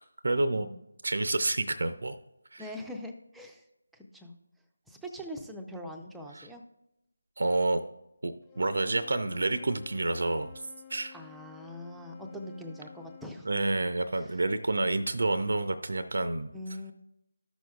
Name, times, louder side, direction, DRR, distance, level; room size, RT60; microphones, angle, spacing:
voice 1, 0.2-0.7 1.0-2.2 2.5-2.7 6.3-6.5 7.4-7.8 8.2-10.5 10.9-11.1 13.5-16.5, right 2 dB, 65° right, 10 dB, 0.5 m, -29 dB
voice 2, 2.6-3.6 3.9-4.3 4.9-6.6 11.1-13.5 14.2-14.4 16.5-16.9, equal, ahead, 1 dB, 0.5 m, -42 dB
Wind instrument woodwind instrument, 8.4-13.4, left 9 dB, 15° left, 1.0 m, -52 dB
14.0 x 6.2 x 2.4 m, 0.87 s
figure-of-eight pair, 160°, 0 cm